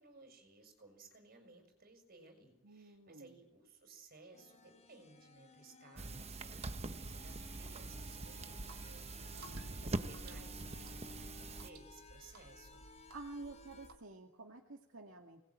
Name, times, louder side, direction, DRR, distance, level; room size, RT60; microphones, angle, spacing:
voice 1, 0.0-12.8, right 3 dB, 45° right, 5 dB, 6.7 m, -60 dB
voice 2, 2.6-3.3 9.4-9.8 13.1-15.4, right 2 dB, 70° right, 1 dB, 2.3 m, -51 dB
sound 1, 4.3-13.9, left 3 dB, 35° left, 4.2 m, -58 dB
sound 2, 6.0-11.7, right 2 dB, 30° right, 0.9 m, -44 dB
sound 3, 8.5-14.0, right 2 dB, 85° right, 3.4 m, -58 dB
25.0 x 20.5 x 9.0 m, 0.90 s
head